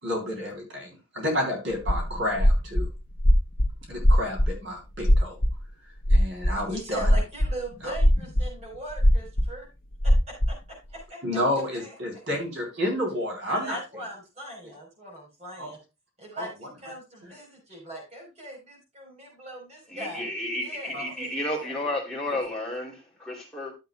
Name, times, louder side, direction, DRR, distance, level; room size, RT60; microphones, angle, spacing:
voice 1, 0.0-2.9 3.9-5.3 6.1-7.1 7.8-7.9 11.2-13.8 15.6-15.7 16.4-16.7 17.2-17.3 20.9-21.0 22.3-22.4, left 1 dB, 60° right, 3.7 m, -30 dB
sound 1, 1.8-2.9 3.2-3.7 4.0-4.5 5.0-5.6 6.0-6.7 7.0-7.5 8.0-8.5 8.7-9.5 10.0-10.5, equal, 75° left, 1.1 m, -20 dB
voice 2, 6.7-9.7 10.0-11.2 11.7-11.9 13.5-15.8 16.2-20.3 20.6-21.8, right 1 dB, 35° right, 4.6 m, -40 dB
voice 3, 19.9-23.7, left 1 dB, 5° left, 2.9 m, -32 dB
12.5 x 7.9 x 2.3 m
head